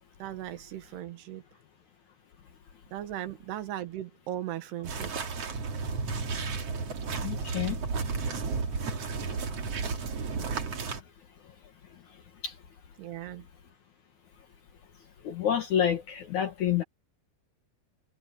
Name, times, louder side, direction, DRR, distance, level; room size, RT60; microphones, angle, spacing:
voice 1, 0.2-1.4 2.9-5.1 13.0-13.4, right 12 dB, 80° right, 3.3 m, -37 dB
sound 1, 4.8-11.0, right 4 dB, 40° right, 2.9 m, -33 dB
voice 2, 7.2-7.8 9.2-9.5 10.5-10.6 11.4-11.6 11.9-12.6 15.2-16.8, left 9 dB, 60° left, 2.2 m, -30 dB
omnidirectional pair, 4.8 m